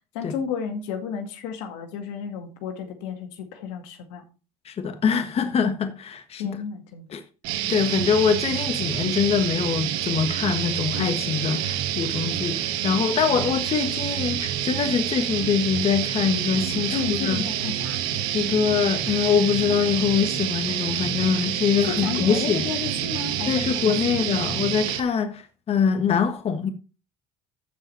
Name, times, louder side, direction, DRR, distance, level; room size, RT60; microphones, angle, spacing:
voice 1, 0.1-4.2 6.4-7.1 16.9-18.0 21.8-24.2, left 6 dB, 85° left, 2.1 m, -32 dB
voice 2, 4.6-6.5 7.1-7.2 7.7-17.4 18.3-22.7 23.5-26.7, left 6 dB, 40° left, 1.3 m, -24 dB
sound 1, 7.4-25.0, right 11 dB, 75° right, 1.6 m, -28 dB
14.0 x 5.0 x 4.3 m
supercardioid pair, 95°, 16 cm